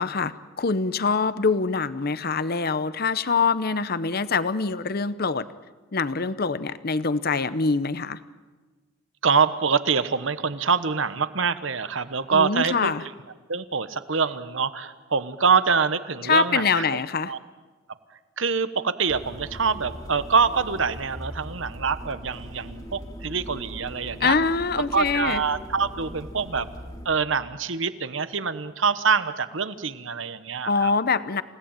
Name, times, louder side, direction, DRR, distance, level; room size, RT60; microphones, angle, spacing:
voice 1, 0.0-5.5 5.9-8.2 12.3-13.0 16.2-17.3 24.2-25.4 30.6-31.4, left 4 dB, 50° left, 15 dB, 0.8 m, -24 dB
voice 2, 9.2-12.9 13.5-16.8 17.3-17.4 18.4-24.3 24.9-26.7 27.0-30.9, right 5 dB, 65° right, 13 dB, 1.2 m, -25 dB
sound 1, 19.1-27.1, equal, 20° left, 2.6 m, -40 dB
28.5 x 17.5 x 8.9 m, 1.3 s
head